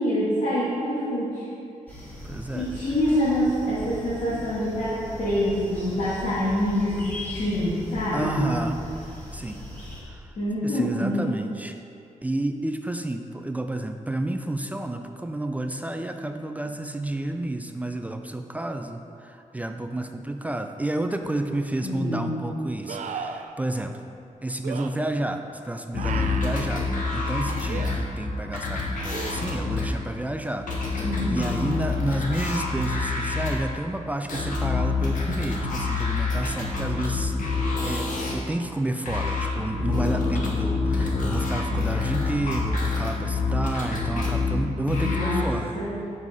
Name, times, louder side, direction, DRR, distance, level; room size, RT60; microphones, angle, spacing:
voice 1, 0.0-1.5 2.5-8.6 10.4-11.4 21.8-22.4 31.0-31.6 45.0-45.5 45.7-45.9, equal, 70° left, -10 dB, 1.8 m, -26 dB
sound 1, 1.9-10.0, equal, 15° left, 1.9 m, -39 dB
voice 2, 2.2-2.7 8.1-8.8 9.3-9.6 10.1-10.3 10.6-11.7 12.2-23.9 24.4-26.9 27.1-37.3 37.8-45.7, right 1 dB, 10° right, 6 dB, 0.3 m, -30 dB
sound 2, 21.3-21.4 22.9-23.5 24.6-24.9 26.0-26.7 27.7-27.9 29.1-29.8 32.9-33.0, right 6 dB, 75° right, 0.4 m, -35 dB
sound 3, 25.9-33.6 34.3-38.3 39.1-45.4, left 3 dB, 90° left, 1.3 m, -27 dB
7.6 x 5.4 x 4.8 m, 2.6 s
wide cardioid pair, 140°, 13 cm